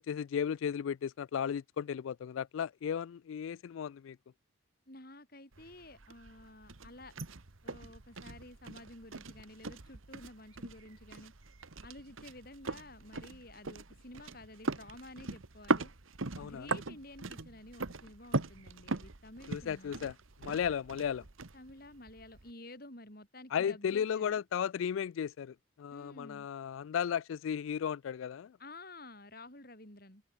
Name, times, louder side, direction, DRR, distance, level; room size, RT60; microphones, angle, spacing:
voice 1, 0.0-4.2 16.4-16.7 19.5-20.1 20.4-21.2 23.5-28.6, left 8 dB, 80° left, 0.3 m, -35 dB
voice 2, 4.9-7.1 7.6-11.3 11.6-15.9 16.4-20.1 21.5-24.4 25.9-26.5 28.6-30.2, left 1 dB, 50° left, 8.0 m, -51 dB
sound 1, 5.5-22.5, right 3 dB, 85° right, 1.5 m, -40 dB
open air
head